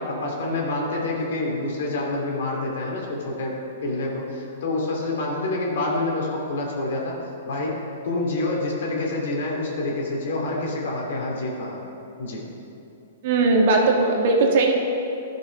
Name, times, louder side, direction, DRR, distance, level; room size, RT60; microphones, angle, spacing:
voice 1, 0.1-3.5 3.8-7.1 7.4-7.7 8.0-11.8 12.2-12.4, left 2 dB, 65° left, -2 dB, 2.5 m, -27 dB
voice 2, 13.2-14.7, right 3 dB, 55° right, 1 dB, 1.5 m, -18 dB
12.5 x 6.0 x 5.2 m, 2.8 s
hypercardioid pair, 125°, 0 cm